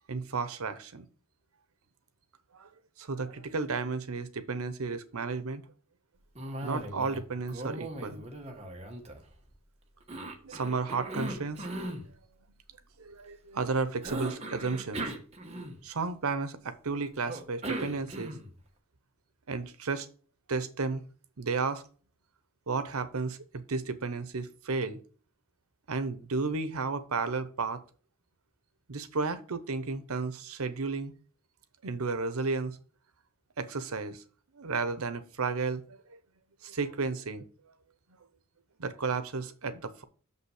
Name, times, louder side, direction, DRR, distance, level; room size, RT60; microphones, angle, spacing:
voice 1, 0.1-1.1 2.5-2.7 3.0-5.6 6.6-8.2 8.5-8.6 10.4-11.7 12.1-12.2 13.0-15.1 15.8-18.3 19.5-20.1 20.5-21.1 21.4-21.8 22.7-25.0 25.9-27.8 28.9-31.1 31.8-32.8 33.6-34.2 34.5-36.2 36.6-37.5 38.8-40.0, right 4 dB, 90° right, 0.8 m, -33 dB
Cough, 6.3-7.2 7.5-9.5 10.1-12.0 14.0-16.0 17.3-18.6, right 1 dB, 30° right, 1.2 m, -38 dB
6.6 x 5.6 x 4.9 m
head